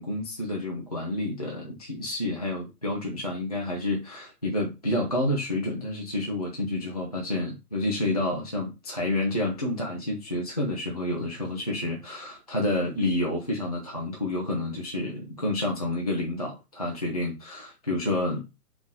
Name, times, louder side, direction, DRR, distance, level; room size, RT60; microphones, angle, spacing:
voice 1, 0.0-18.4, left 1 dB, 25° left, 0.4 m, -29 dB
3.8 x 2.9 x 3.7 m
figure-of-eight pair, 130°, 48 cm